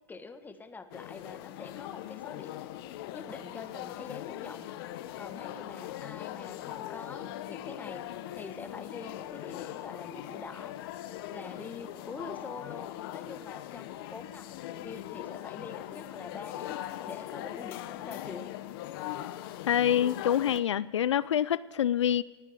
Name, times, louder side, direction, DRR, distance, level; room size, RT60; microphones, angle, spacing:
voice 1, 0.1-2.6 3.1-4.7 5.2-8.1 8.3-10.8 11.3-18.6, left 4 dB, 10° left, 9 dB, 1.5 m, -45 dB
sound 1, 0.9-20.6, left 13 dB, 55° left, 1.1 m, -40 dB
voice 2, 19.7-22.2, left 10 dB, 80° left, 18 dB, 0.4 m, -26 dB
19.0 x 8.1 x 9.4 m, 1.3 s
hypercardioid pair, 110°, 15 cm